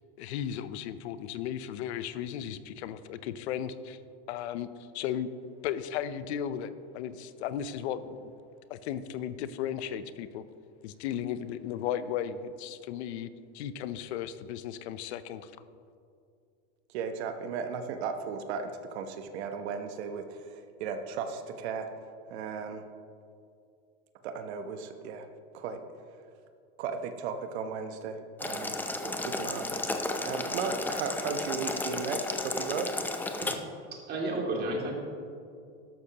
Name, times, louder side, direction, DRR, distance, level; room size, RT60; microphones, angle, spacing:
voice 1, 0.2-4.0 4.3-5.3 5.6-8.3 8.7-10.4 10.8-15.5, left 9 dB, 75° left, 13 dB, 0.7 m, -35 dB
voice 2, 16.9-21.9 22.3-22.8 24.2-25.3 25.5-25.8 26.8-28.7 29.0-29.7 30.2-32.9, right 5 dB, 70° right, 7 dB, 1.0 m, -35 dB
Boiling, 28.4-33.5, left 2 dB, 5° left, 0.6 m, -33 dB
voice 3, 33.4-34.9, right 2 dB, 30° right, -1 dB, 2.6 m, -33 dB
13.0 x 12.0 x 2.9 m, 2.5 s
supercardioid pair, 130°, 34 cm